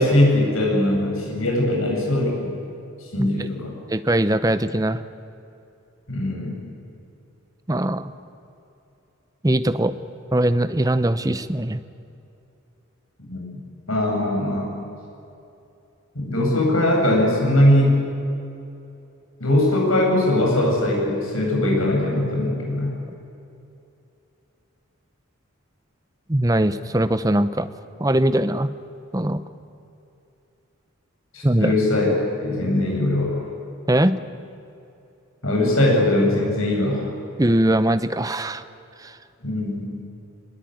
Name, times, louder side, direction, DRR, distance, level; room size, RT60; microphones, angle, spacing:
voice 1, 0.0-2.5 3.1-3.7 6.1-6.6 13.2-13.5 13.9-14.7 16.1-18.0 19.4-23.0 31.3-32.1 32.4-33.4 35.4-37.0 39.4-39.9, left 1 dB, 70° left, -1 dB, 8.0 m, -20 dB
voice 2, 3.9-5.0 7.7-8.1 9.4-9.9 10.3-11.8 26.3-27.7 28.0-28.7 29.1-29.4 31.4-31.7 33.9-34.1 37.4-38.6 39.0-39.1, right 1 dB, 15° right, 12 dB, 0.7 m, -21 dB
24.5 x 21.0 x 9.4 m, 2.7 s
head